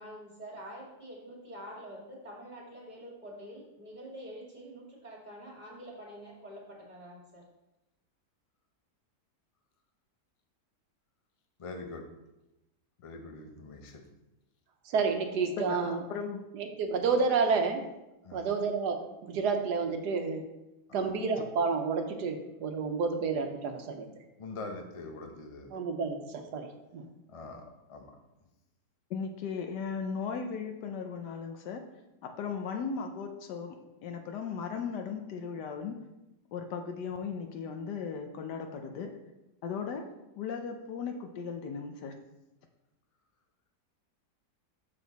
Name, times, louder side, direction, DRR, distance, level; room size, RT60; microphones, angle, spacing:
voice 1, 0.0-7.4, equal, 25° right, -3 dB, 2.0 m, -46 dB
voice 2, 11.6-12.0 13.0-14.0 18.2-18.5 20.9-21.1 24.4-25.8 27.3-27.6 27.9-28.1, left 3 dB, 45° left, 3 dB, 0.4 m, -43 dB
voice 3, 14.9-16.0 16.5-17.9 18.3-20.4 20.9-24.1 25.7-26.7 26.9-27.0, right 5 dB, 75° right, 5 dB, 1.4 m, -30 dB
voice 4, 15.6-16.4 29.1-31.9 32.2-36.0 36.5-39.2 39.6-40.1 40.4-42.1, left 6 dB, 80° left, 5 dB, 1.3 m, -37 dB
6.9 x 6.1 x 4.0 m, 0.95 s
omnidirectional pair, 1.8 m